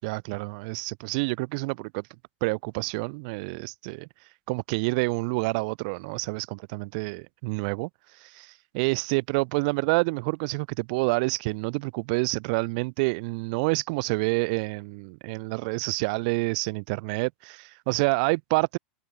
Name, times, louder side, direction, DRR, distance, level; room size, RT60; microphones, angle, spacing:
voice 1, 0.0-2.0 2.4-4.1 4.5-7.9 8.2-18.8, right 29 dB, 50° right, 5.3 m, -28 dB
figure-of-eight pair, 90°, 6 cm